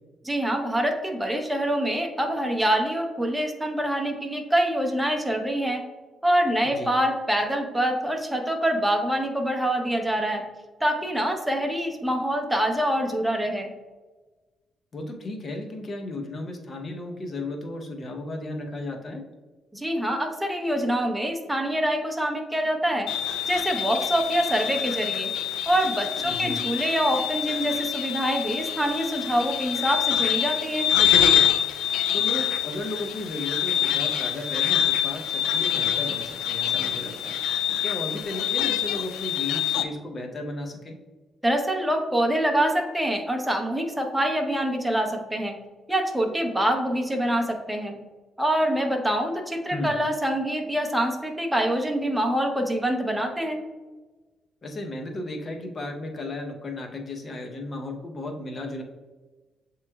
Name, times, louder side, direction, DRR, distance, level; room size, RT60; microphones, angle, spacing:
voice 1, 0.2-5.8 6.2-10.4 10.8-13.7 19.7-23.1 23.5-25.3 25.7-30.9 41.4-45.6 45.9-48.0 48.4-53.6, right 1 dB, 5° right, 3 dB, 0.7 m, -25 dB
voice 2, 14.9-19.2 26.2-26.6 32.1-37.4 37.8-41.0 49.7-49.9 54.6-58.8, left 2 dB, 40° left, 3 dB, 0.8 m, -34 dB
sound 1, 23.1-39.8, left 10 dB, 90° left, 0.3 m, -26 dB
7.3 x 3.1 x 2.3 m, 1.2 s
cardioid pair, 90°, 0 cm